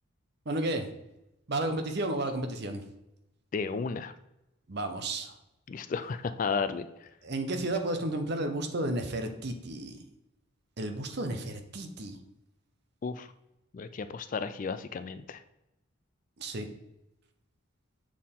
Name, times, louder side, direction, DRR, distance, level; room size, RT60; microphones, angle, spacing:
voice 1, 0.5-0.9 1.5-2.8 4.7-5.3 7.2-10.0 10.8-12.2 16.4-16.7, right 1 dB, 55° right, 6 dB, 0.8 m, -32 dB
voice 2, 3.5-4.1 5.7-7.1 13.0-13.3 13.7-15.4, left 5 dB, 40° left, 12 dB, 0.3 m, -33 dB
7.4 x 4.3 x 3.6 m, 0.90 s
head